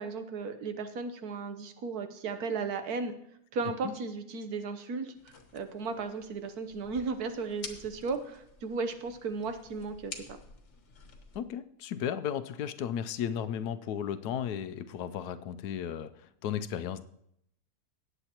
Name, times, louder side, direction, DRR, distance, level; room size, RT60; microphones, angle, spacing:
voice 1, 0.0-3.1 3.5-10.2, right 4 dB, 75° right, 8 dB, 1.4 m, -35 dB
sound 1, 5.1-11.4, left 4 dB, 50° left, 1.4 m, -50 dB
voice 2, 11.3-17.0, left 9 dB, 85° left, 12 dB, 1.2 m, -35 dB
18.0 x 8.0 x 2.9 m, 0.75 s
omnidirectional pair, 1.7 m